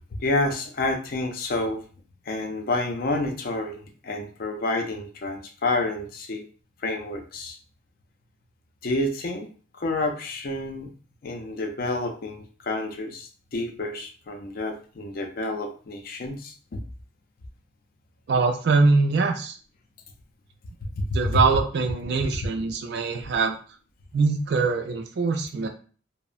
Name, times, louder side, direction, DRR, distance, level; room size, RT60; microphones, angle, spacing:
voice 1, 0.1-1.8 2.3-6.5 6.8-7.6 8.8-9.5 9.7-10.9 11.2-16.8 20.8-21.4, left 2 dB, 45° left, 4 dB, 0.4 m, -29 dB
voice 2, 18.3-19.6 21.1-23.6 24.1-25.7, right 4 dB, 55° right, 3 dB, 0.4 m, -23 dB
2.7 x 2.0 x 2.4 m, 0.40 s
head